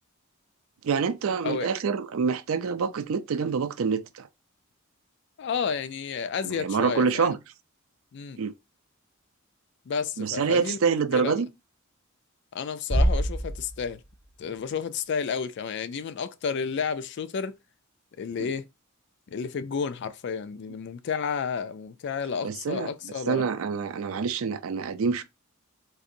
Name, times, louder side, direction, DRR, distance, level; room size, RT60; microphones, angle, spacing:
voice 1, 0.8-4.3 6.4-7.4 8.4-8.5 10.2-11.5 18.4-18.5 22.4-25.2, right 5 dB, 70° right, 0.4 m, -26 dB
voice 2, 5.4-7.3 8.1-8.4 9.9-10.8 11.1-11.4 12.5-14.0 14.4-17.6 18.2-18.7 19.3-23.5, left 6 dB, 55° left, 0.3 m, -31 dB
sound 1, 12.9-14.3, right 1 dB, 5° right, 1.0 m, -25 dB
4.0 x 2.4 x 2.6 m
head